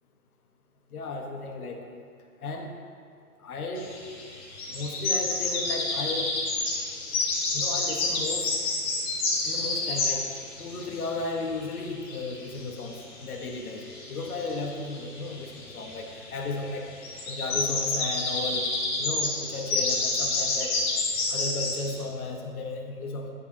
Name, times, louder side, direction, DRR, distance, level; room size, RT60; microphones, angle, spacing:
voice 1, 0.9-1.8 2.4-2.7 3.4-3.9 4.7-6.3 7.5-8.5 9.4-10.3 10.6-13.8 14.1-16.9 17.3-18.7 19.0-20.7 21.3-23.3, left 3 dB, 65° left, 3 dB, 1.0 m, -34 dB
sound 1, 3.8-22.0, left 3 dB, 15° left, 0.6 m, -30 dB
9.7 x 4.9 x 2.8 m, 2.3 s
hypercardioid pair, 130°, 47 cm